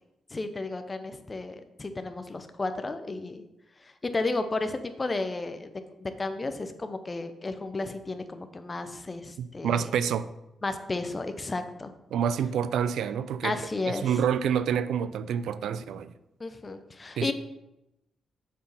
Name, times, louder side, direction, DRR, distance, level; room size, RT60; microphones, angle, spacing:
voice 1, 0.3-3.4 4.0-5.7 6.0-9.9 10.6-11.9 13.4-14.2 16.4-17.3, left 3 dB, 25° left, 9 dB, 0.7 m, -33 dB
voice 2, 9.4-10.3 12.1-13.6 13.9-16.1 17.2-17.3, right 8 dB, 85° right, 14 dB, 0.4 m, -28 dB
7.2 x 4.8 x 5.4 m, 0.91 s
cardioid pair, 110°, 0 cm